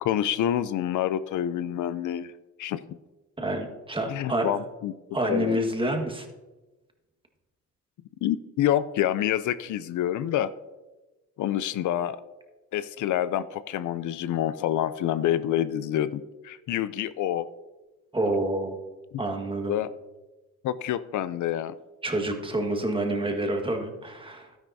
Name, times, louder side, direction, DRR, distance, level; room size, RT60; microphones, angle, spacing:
voice 1, 0.0-2.3 2.6-3.0 4.1-4.9 5.3-5.6 8.2-10.5 11.4-12.2 12.7-17.5 19.7-19.9 20.6-21.8, left 11 dB, 75° left, 15 dB, 0.5 m, -27 dB
voice 2, 3.4-4.5 5.1-6.3 18.1-18.8 19.2-19.8 22.0-24.5, right 1 dB, 15° right, 3 dB, 1.5 m, -28 dB
12.5 x 10.0 x 2.7 m, 1.1 s
cardioid pair, 100°, 30 cm